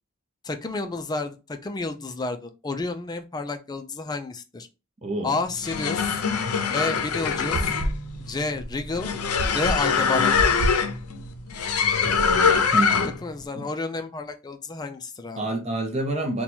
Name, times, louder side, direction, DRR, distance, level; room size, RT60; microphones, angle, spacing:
voice 1, 0.4-4.7 5.2-6.2 6.7-7.7 8.3-9.1 9.5-10.4 13.2-15.5, left 3 dB, 20° left, 0.4 m, -30 dB
voice 2, 5.0-5.4 12.0-13.2 13.5-13.7 15.4-16.4, right 2 dB, 30° right, 0.6 m, -28 dB
sound 1, 5.5-13.3, left 6 dB, 85° left, 0.6 m, -23 dB
sound 2, 7.2-12.6, right 1 dB, 80° right, 0.5 m, -32 dB
2.9 x 2.3 x 4.2 m
head